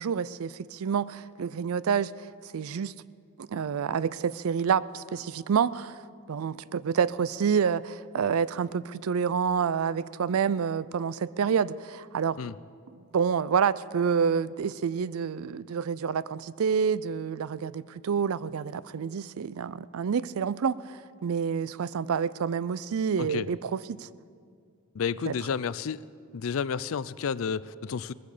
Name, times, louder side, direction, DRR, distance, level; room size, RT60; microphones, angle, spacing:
voice 1, 0.0-2.1 2.5-2.9 3.4-6.0 6.3-12.4 13.1-24.1 25.3-25.4, right 6 dB, 80° right, 19 dB, 0.4 m, -28 dB
voice 2, 25.0-26.0 26.3-28.1, left 6 dB, 70° left, 18 dB, 0.4 m, -31 dB
19.5 x 15.0 x 5.0 m, 2.2 s
head